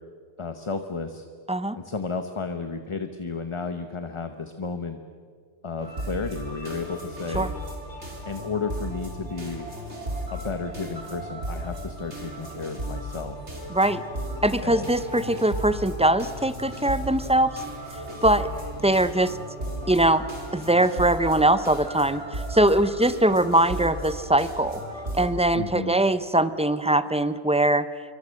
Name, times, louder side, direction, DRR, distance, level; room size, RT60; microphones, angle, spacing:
voice 1, 0.4-1.2 1.7-5.0 5.6-7.5 8.3-9.7 10.3-13.4 14.6-14.9 25.5-25.9, left 4 dB, 30° left, 7 dB, 1.0 m, -32 dB
sound 1, 5.8-25.3, right 1 dB, 70° right, 4.2 m, -35 dB
voice 2, 13.7-14.0 14.4-17.6 18.2-18.5 18.8-19.3 19.9-20.2 20.5-24.8 25.1-27.9, right 1 dB, 5° right, 13 dB, 0.6 m, -22 dB
27.0 x 24.0 x 6.5 m, 2.1 s
omnidirectional pair, 1.2 m